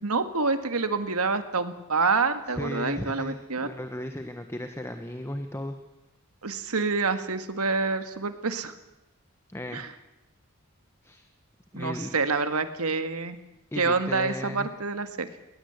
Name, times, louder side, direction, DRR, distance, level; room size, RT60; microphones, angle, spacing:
voice 1, 0.0-3.7 6.4-8.7 9.7-9.9 11.7-13.4 13.8-15.3, right 4 dB, 90° right, 9 dB, 1.8 m, -27 dB
voice 2, 2.6-5.8 9.5-9.8 11.0-11.2 11.7-12.1 13.7-14.7, left 1 dB, 10° left, 7 dB, 1.2 m, -35 dB
20.0 x 19.5 x 8.1 m, 0.99 s
head